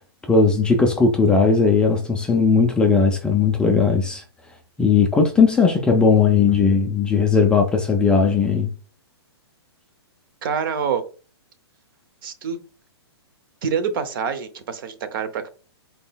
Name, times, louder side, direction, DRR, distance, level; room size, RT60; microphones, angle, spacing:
voice 1, 0.3-4.2 4.8-8.7, left 5 dB, 5° left, 0.3 m, -17 dB
voice 2, 10.4-11.0 12.2-12.6 13.6-15.5, right 6 dB, 50° right, 0.7 m, -26 dB
4.1 x 3.7 x 2.3 m
hypercardioid pair, 150°, 14 cm